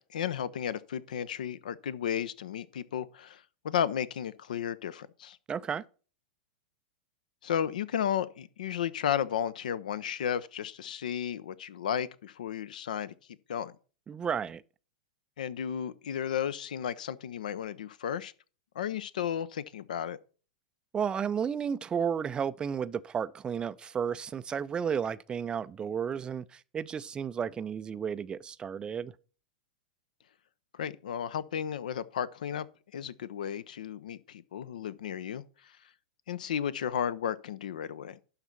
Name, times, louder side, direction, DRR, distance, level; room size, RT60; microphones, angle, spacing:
voice 1, 0.0-5.4 7.4-13.1 13.5-13.7 15.4-18.3 18.7-20.2 30.7-32.7 32.9-35.7 36.3-38.2, left 9 dB, 70° left, 0.5 m, -33 dB
voice 2, 5.5-5.8 14.1-14.6 20.9-29.1, right 7 dB, 20° right, 0.4 m, -33 dB
11.5 x 4.0 x 5.6 m
figure-of-eight pair, 100°, 5 cm